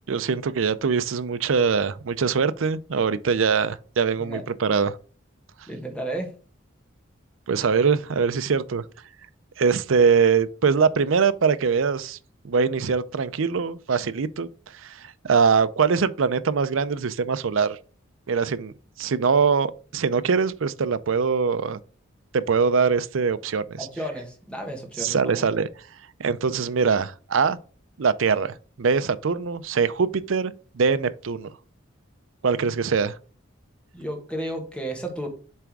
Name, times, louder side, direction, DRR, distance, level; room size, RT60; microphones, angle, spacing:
voice 1, 0.1-5.0 7.5-8.8 9.6-12.2 12.4-17.8 18.3-21.8 22.3-23.9 25.0-25.7 26.2-27.6 28.0-31.5 32.4-33.2, right 5 dB, 75° right, 0.5 m, -23 dB
voice 2, 5.7-6.3 23.8-25.6 33.9-35.3, right 1 dB, 5° left, 1.5 m, -33 dB
7.5 x 3.5 x 4.7 m
head